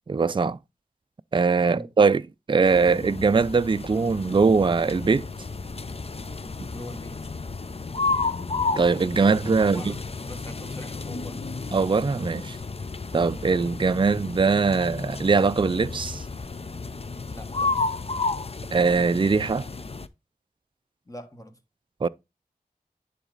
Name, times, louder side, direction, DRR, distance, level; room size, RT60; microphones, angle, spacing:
voice 1, 0.1-0.6 1.3-2.2 2.5-5.3 8.8-10.0 11.7-12.6 13.1-16.2 18.7-19.7 22.0-22.1, right 4 dB, 30° right, 0.4 m, -21 dB
sound 1, 2.6-20.1, left 3 dB, 40° left, 0.6 m, -32 dB
voice 2, 6.7-7.3 9.6-10.0 10.2-11.4 17.3-17.9 21.1-21.6, left 1 dB, 20° left, 1.5 m, -42 dB
10.0 x 4.0 x 3.9 m
wide cardioid pair, 40°, 16 cm